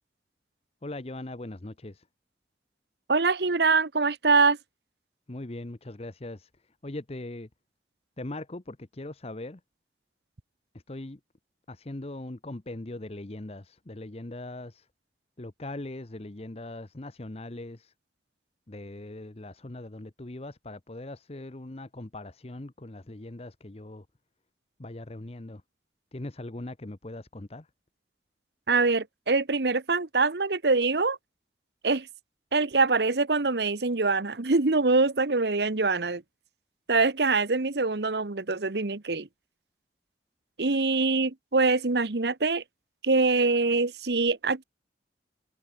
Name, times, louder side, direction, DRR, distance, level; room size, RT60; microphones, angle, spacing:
voice 1, 0.8-2.1 5.3-6.5 6.8-7.5 8.2-9.6 10.7-11.2 11.7-14.9 15.4-17.9 18.7-24.1 24.8-25.6 26.1-27.7, left 2 dB, 35° left, 0.9 m, -40 dB
voice 2, 3.1-4.6 28.7-31.2 31.8-32.1 32.5-36.2 36.9-39.3 40.6-42.6 43.0-44.6, right 3 dB, 65° right, 1.1 m, -24 dB
head